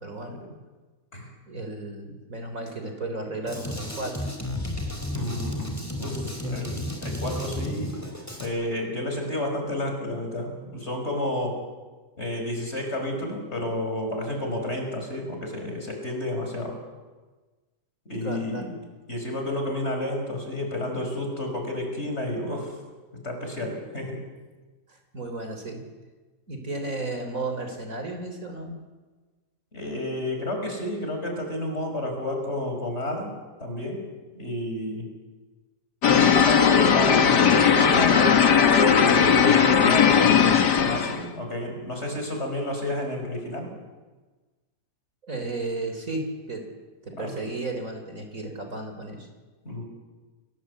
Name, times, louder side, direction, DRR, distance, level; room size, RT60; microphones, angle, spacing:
voice 1, 0.0-0.4 1.5-4.3 6.1-6.7 18.2-18.7 24.9-25.9 26.5-28.8 45.2-46.7 47.0-49.3, right 2 dB, 50° right, 5 dB, 4.1 m, -34 dB
Drum kit, 3.5-8.5, left 1 dB, 10° left, 4.2 m, -32 dB
voice 2, 5.1-7.9 8.4-11.6 12.2-16.8 18.1-18.7 19.1-22.8 23.2-24.2 29.7-33.3 33.6-34.0 34.3-35.0 36.0-43.7 47.2-47.4 49.6-49.8, left 1 dB, 40° left, 3 dB, 5.9 m, -31 dB
sound 1, 36.0-41.3, left 7 dB, 80° left, 2.1 m, -18 dB
29.5 x 19.5 x 8.2 m, 1.3 s
omnidirectional pair, 1.8 m